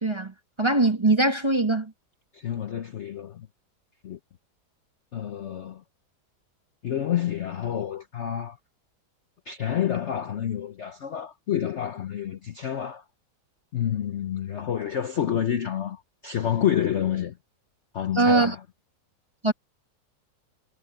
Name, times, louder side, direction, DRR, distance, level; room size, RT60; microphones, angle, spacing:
voice 1, 0.0-1.9 18.1-18.5 19.4-19.5, right 2 dB, 15° right, 1.3 m, -22 dB
voice 2, 2.3-3.5 4.0-4.2 5.1-5.8 6.8-8.6 9.5-13.0 13.7-17.4 17.9-18.6, left 10 dB, 55° left, 0.8 m, -28 dB
omnidirectional pair, 1.9 m